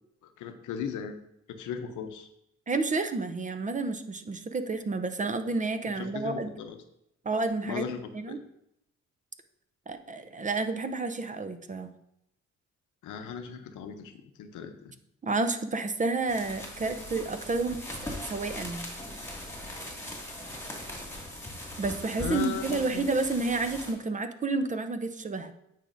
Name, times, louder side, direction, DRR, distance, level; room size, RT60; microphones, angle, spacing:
voice 1, 0.2-1.2 1.5-2.3 5.9-6.8 7.7-8.4 13.0-14.7 22.2-23.1, left 7 dB, 80° left, 8 dB, 0.8 m, -37 dB
voice 2, 2.7-6.5 7.2-7.8 8.1-8.4 9.9-11.9 15.2-18.9 21.8-25.5, right 3 dB, 25° right, 9 dB, 0.6 m, -30 dB
sound 1, 16.2-23.9, left 1 dB, 10° left, 1.9 m, -40 dB
8.9 x 4.9 x 2.6 m, 0.80 s
cardioid pair, 90°, 30 cm